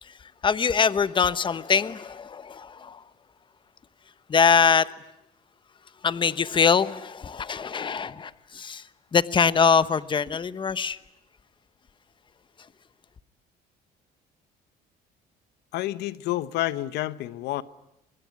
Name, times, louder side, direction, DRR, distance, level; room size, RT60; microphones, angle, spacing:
voice 1, 0.0-3.0 4.3-4.9 6.0-11.0, left 6 dB, 30° left, 1.0 m, -23 dB
voice 2, 15.7-17.6, left 15 dB, 85° left, 1.0 m, -29 dB
24.5 x 22.5 x 9.5 m
cardioid pair, 110°, 17 cm